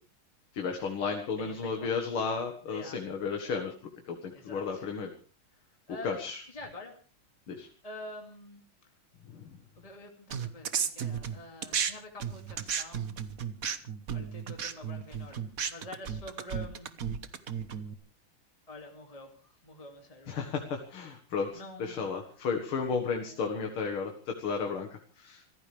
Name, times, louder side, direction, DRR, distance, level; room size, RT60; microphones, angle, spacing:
voice 1, 0.5-3.7 4.1-5.1 6.0-6.4 7.5-7.7 9.3-9.6 20.3-25.4, left 5 dB, 85° left, 3 dB, 2.6 m, -33 dB
voice 2, 1.4-2.1 2.7-3.0 4.3-4.8 5.9-6.2 6.5-6.9 7.8-8.6 9.8-13.2 14.1-16.9 18.7-19.3 19.6-20.4 21.5-22.1 23.3-23.4, left 1 dB, 15° left, 2 dB, 2.5 m, -46 dB
sound 1, 10.3-11.9 12.2-17.9, right 7 dB, 50° right, 1.4 m, -34 dB
27.0 x 15.0 x 3.4 m, 0.38 s
omnidirectional pair, 2.3 m